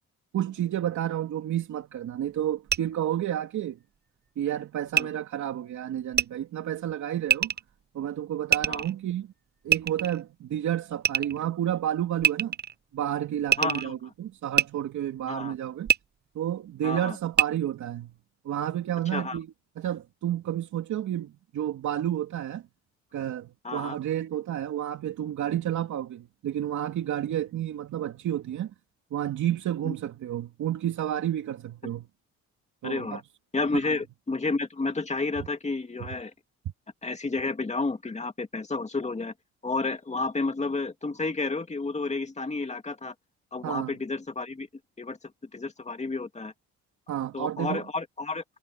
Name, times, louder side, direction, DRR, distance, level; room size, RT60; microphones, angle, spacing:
voice 1, 0.3-3.8 4.4-7.5 7.9-9.3 9.6-12.5 12.9-15.9 16.3-18.1 18.4-19.5 19.8-22.6 23.1-28.7 29.1-32.1 32.8-33.2 43.6-43.9 47.1-47.8, right 11 dB, 70° right, 2.9 m, -30 dB
sound 1, 2.7-2.8 4.9-5.0 6.1-6.3 7.3-7.6 8.5-8.9 9.7-10.2 11.0-11.4 12.2-12.7 13.5-13.9 14.5-14.7 15.9-16.0 17.3-17.5, right 8 dB, 35° right, 0.8 m, -23 dB
voice 2, 13.6-13.9 15.3-15.5 16.8-17.2 19.1-19.4 23.6-24.0 29.8-29.9 31.8-31.9 32.8-33.2 33.5-36.3 37.0-39.3 39.6-43.1 43.5-44.7 45.0-45.2 45.5-46.5 47.3-48.4, left 3 dB, 20° left, 2.5 m, -31 dB
cardioid pair, 90°, 30 cm